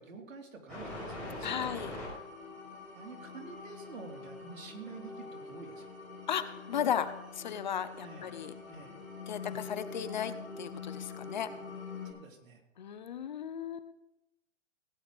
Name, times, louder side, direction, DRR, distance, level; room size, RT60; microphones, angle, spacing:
voice 1, 0.0-1.7 2.9-5.8 8.0-8.3 8.7-9.0 9.4-9.6 12.0-12.6, right 4 dB, 85° right, 2 dB, 3.2 m, -48 dB
sound 1, 0.7-12.1, left 3 dB, ahead, 6.3 m, -44 dB
voice 2, 1.4-1.9 6.3-8.5 9.3-11.5 12.8-13.9, left 8 dB, 35° left, 13 dB, 0.7 m, -35 dB
16.5 x 9.2 x 5.1 m, 0.90 s
hypercardioid pair, 165°, 38 cm